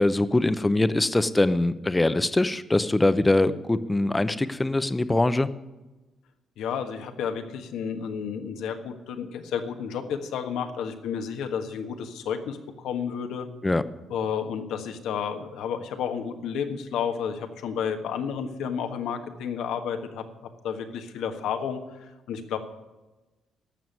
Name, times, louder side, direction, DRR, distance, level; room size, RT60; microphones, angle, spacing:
voice 1, 0.0-5.5 13.6-13.8, left 2 dB, 15° left, 13 dB, 0.8 m, -23 dB
voice 2, 6.6-13.5 14.1-20.2 20.6-22.6, left 7 dB, 85° left, 6 dB, 1.5 m, -31 dB
12.5 x 7.2 x 9.4 m, 1.1 s
cardioid pair, 90°, 0 cm